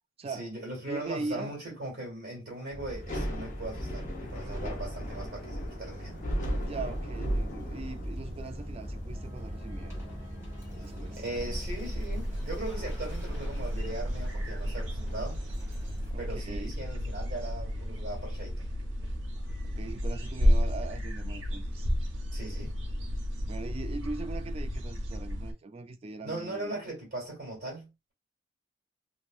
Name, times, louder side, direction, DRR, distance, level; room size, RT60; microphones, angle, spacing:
voice 1, 0.2-6.2 10.8-10.9 11.2-15.4 16.2-18.7 22.3-22.7 26.2-28.1, right 2 dB, 50° right, 1.9 m, -39 dB
voice 2, 0.9-1.6 6.6-10.0 10.8-11.2 16.1-16.8 19.6-21.9 23.5-26.8, right 3 dB, 30° right, 0.3 m, -40 dB
sound 1, 2.7-16.1, equal, 15° right, 1.9 m, -43 dB
Thunder / Rain, 2.9-16.1, equal, 40° left, 0.8 m, -38 dB
sound 2, 11.3-25.5, equal, 75° right, 0.8 m, -32 dB
3.0 x 2.9 x 2.3 m
head